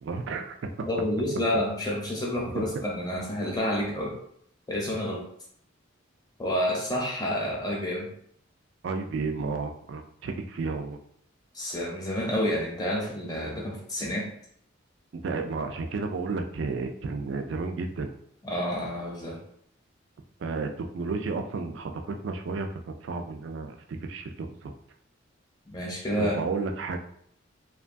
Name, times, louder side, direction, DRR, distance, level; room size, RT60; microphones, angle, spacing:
voice 1, 0.0-0.9 2.5-2.7 8.8-11.0 15.1-18.1 20.4-24.7 26.2-27.0, right 4 dB, 65° right, 5 dB, 0.3 m, -32 dB
voice 2, 0.9-4.2 4.7-5.3 6.4-8.1 11.5-14.3 18.4-19.4 25.7-26.4, left 1 dB, 20° left, -3 dB, 0.7 m, -29 dB
3.0 x 2.2 x 2.5 m, 0.66 s
head